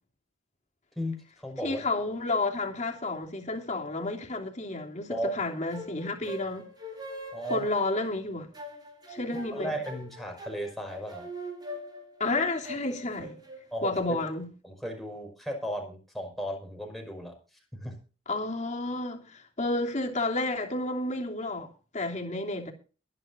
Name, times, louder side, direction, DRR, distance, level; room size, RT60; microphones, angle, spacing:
voice 1, 1.0-1.8 5.1-5.3 7.3-7.7 9.5-11.3 13.7-14.2 14.6-17.3 17.7-18.0, equal, ahead, 5.6 m, -35 dB
voice 2, 1.6-6.7 7.5-8.5 9.1-9.7 12.2-13.4 13.8-14.5 18.3-22.7, left 2 dB, 35° left, 3.0 m, -31 dB
sound 1, 5.5-14.0, right 1 dB, 20° right, 5.3 m, -42 dB
22.5 x 11.0 x 2.6 m
head